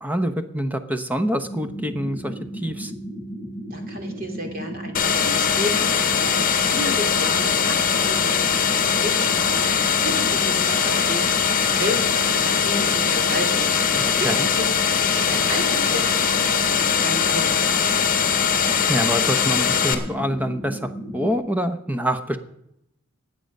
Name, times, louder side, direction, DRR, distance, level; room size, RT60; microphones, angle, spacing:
voice 1, 0.0-2.9 13.9-14.5 18.9-22.4, equal, 10° right, 9 dB, 0.8 m, -26 dB
sound 1, 1.4-21.4, right 1 dB, 25° left, 5.4 m, -35 dB
voice 2, 3.7-11.3 11.6-14.7 15.0-18.1, equal, 40° right, 3 dB, 2.8 m, -32 dB
sound 2, 4.9-19.9, left 7 dB, 40° left, 1.4 m, -21 dB
19.5 x 7.8 x 5.3 m, 0.80 s
head